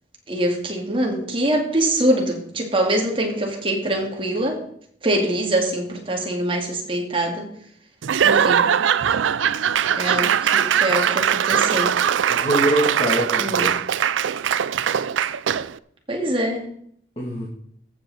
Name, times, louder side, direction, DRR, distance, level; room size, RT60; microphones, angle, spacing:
voice 1, 0.3-4.6 5.0-7.5 8.2-8.6 9.9-11.9 13.4-13.7 16.1-16.7, right 1 dB, 30° right, 1 dB, 2.2 m, -24 dB
Laughter / Applause / Crowd, 8.0-15.8, right 8 dB, 80° right, 0.4 m, -21 dB
voice 2, 12.3-13.7 17.2-17.5, right 1 dB, 30° left, -5 dB, 2.5 m, -23 dB
14.0 x 7.7 x 4.2 m, 0.67 s
head